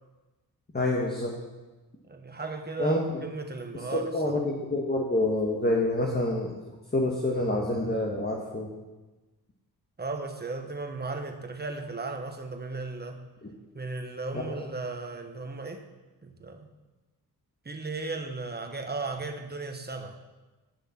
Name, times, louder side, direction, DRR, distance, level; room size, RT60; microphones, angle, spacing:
voice 1, 0.7-1.4 2.8-3.0 3.9-6.5 6.9-8.7 14.3-14.6, left 1 dB, 25° left, -1 dB, 1.5 m, -27 dB
voice 2, 2.1-4.4 10.0-13.2 13.7-15.8 16.2-16.7 17.6-20.2, right 3 dB, 25° right, 4 dB, 1.2 m, -36 dB
10.5 x 6.6 x 5.9 m, 1.2 s
cardioid pair, 85°, 39 cm